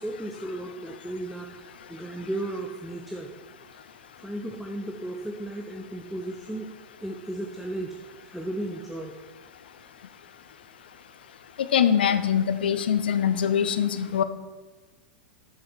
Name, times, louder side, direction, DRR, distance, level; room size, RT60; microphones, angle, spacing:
voice 1, 0.0-3.3 4.2-6.7 7.0-9.1, right 1 dB, ahead, 1 dB, 0.8 m, -35 dB
voice 2, 11.7-14.2, left 8 dB, 65° left, 12 dB, 0.6 m, -23 dB
7.1 x 6.5 x 6.1 m, 1.3 s
figure-of-eight pair, 95°, 6 cm